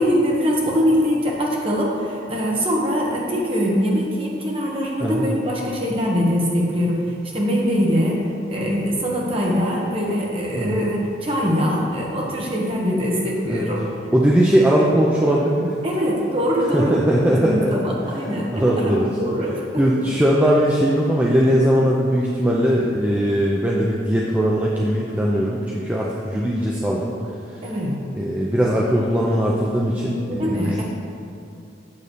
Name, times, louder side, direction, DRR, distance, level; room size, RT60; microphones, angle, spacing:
voice 1, 0.0-13.8 15.8-19.6 20.0-20.1 27.6-28.0 30.3-30.8, equal, 30° right, -3 dB, 1.1 m, -22 dB
voice 2, 14.1-15.7 16.7-17.7 18.5-19.1 19.8-27.1 27.5-27.6 28.1-30.8, equal, 10° right, -4 dB, 0.4 m, -19 dB
8.6 x 3.2 x 6.6 m, 2.5 s
head